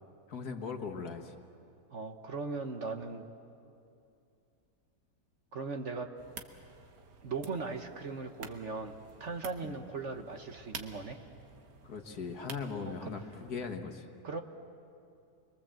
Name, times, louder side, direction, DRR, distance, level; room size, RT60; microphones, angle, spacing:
voice 1, 0.3-1.3 9.6-9.8 11.8-14.1, left 5 dB, 65° left, 5 dB, 1.9 m, -39 dB
voice 2, 1.9-3.2 5.5-6.1 7.2-11.2 12.8-13.1 14.2-14.4, right 4 dB, 45° right, 5 dB, 1.3 m, -38 dB
sound 1, 6.2-13.8, right 5 dB, 75° right, 1.9 m, -50 dB
28.5 x 22.5 x 7.6 m, 2.6 s
omnidirectional pair, 1.8 m